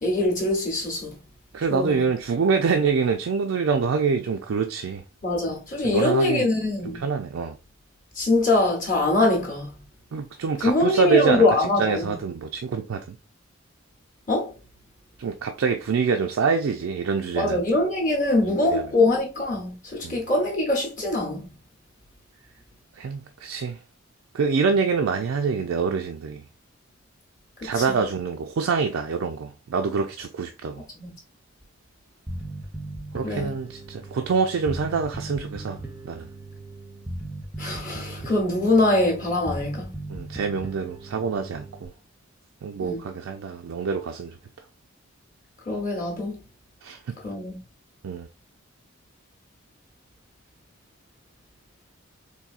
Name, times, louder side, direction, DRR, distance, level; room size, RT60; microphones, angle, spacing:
voice 1, 0.0-1.2 1.7-2.1 5.2-7.0 8.2-9.8 10.6-12.2 14.3-14.5 17.3-21.5 27.6-28.0 31.0-31.1 33.2-33.5 37.6-39.9 42.8-43.0 45.7-46.4 47.2-47.6, left 2 dB, 40° left, 0.8 m, -23 dB
voice 2, 1.5-5.0 5.8-6.5 6.9-7.6 10.1-13.2 15.2-17.6 18.4-18.8 20.0-20.2 23.0-23.8 24.3-26.4 27.6-30.8 33.1-35.8 36.1-36.3 40.1-41.9 42.6-44.4 46.8-47.1 48.0-48.3, right 5 dB, 80° right, 0.4 m, -25 dB
Bass guitar, 32.3-41.9, right 2 dB, 5° right, 0.5 m, -38 dB
4.1 x 2.6 x 2.4 m
head